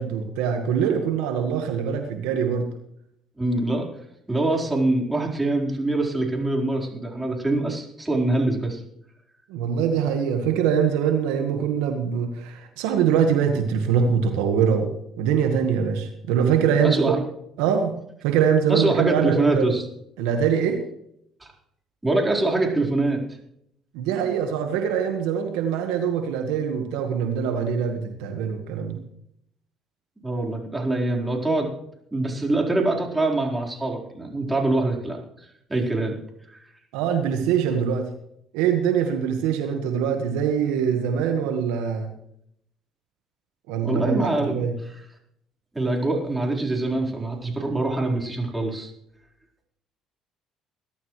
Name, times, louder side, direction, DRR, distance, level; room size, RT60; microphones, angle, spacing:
voice 1, 0.0-2.7 9.5-17.2 17.6-17.9 18.2-19.7 20.2-20.8 23.9-29.0 36.9-38.1 38.5-42.1 43.7-44.7, right 7 dB, 80° right, 5 dB, 1.6 m, -23 dB
voice 2, 3.4-3.9 4.3-8.8 16.8-17.2 18.7-19.8 21.4-21.5 22.0-23.2 30.2-31.7 32.1-36.1 36.5-36.6 43.8-44.5 44.8-45.0 45.7-48.9, right 2 dB, 15° right, -1 dB, 4.4 m, -24 dB
20.5 x 12.5 x 3.3 m, 0.74 s
supercardioid pair, 70°, 0 cm